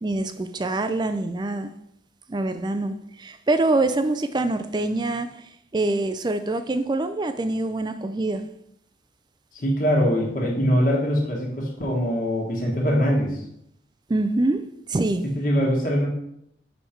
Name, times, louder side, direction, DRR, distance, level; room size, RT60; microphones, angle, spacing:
voice 1, 0.0-1.7 2.3-5.3 5.7-8.4 14.1-14.6 14.9-15.2, right 2 dB, 25° right, 10 dB, 0.4 m, -25 dB
voice 2, 9.5-13.4 15.2-16.1, equal, 45° left, -3 dB, 1.5 m, -22 dB
6.3 x 5.1 x 4.4 m, 0.74 s
head